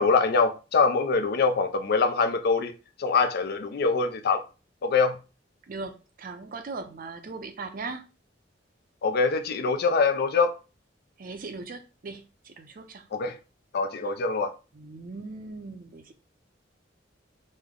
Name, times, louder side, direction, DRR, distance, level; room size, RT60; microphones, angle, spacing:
voice 1, 0.0-2.7 3.0-4.4 4.8-5.2 9.0-10.6 13.1-13.4 13.7-14.5, left 4 dB, 55° left, 0.4 m, -24 dB
voice 2, 5.7-8.1 11.2-13.1 14.0-14.1 14.7-16.1, right 3 dB, 50° right, 0.5 m, -39 dB
3.2 x 2.1 x 3.6 m
head